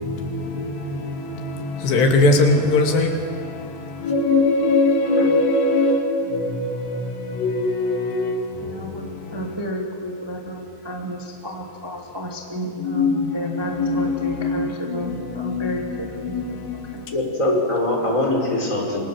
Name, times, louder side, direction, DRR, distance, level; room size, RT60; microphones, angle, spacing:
voice 1, 0.0-3.1 4.0-8.3 12.8-14.7 14.9-16.0 16.3-16.8, left 2 dB, 85° left, 4.8 m, -21 dB
voice 2, 8.6-16.6 16.9-17.0, equal, 10° right, 2.0 m, -31 dB
voice 3, 17.1-19.1, left 1 dB, 20° left, 5.8 m, -22 dB
29.0 x 25.5 x 7.7 m
omnidirectional pair, 4.7 m